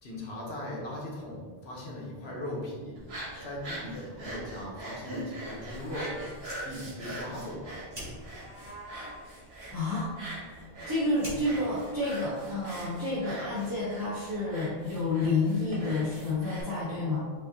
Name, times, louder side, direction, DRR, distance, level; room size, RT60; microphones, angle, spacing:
voice 1, 0.0-2.9 3.4-6.1 6.6-7.8, left 1 dB, 85° left, -3 dB, 1.3 m, -39 dB
sound 1, 3.0-16.6, right 1 dB, 75° right, 1.3 m, -42 dB
Livestock farm animals working animals, 5.4-6.5 7.8-9.3, right 1 dB, 35° left, 1.0 m, -48 dB
Fire, 6.3-13.1, equal, 50° right, 1.8 m, -49 dB
voice 2, 9.7-10.1 10.9-17.2, left 2 dB, 20° right, -10 dB, 1.1 m, -29 dB
5.4 x 2.8 x 2.8 m, 1.5 s
omnidirectional pair, 1.0 m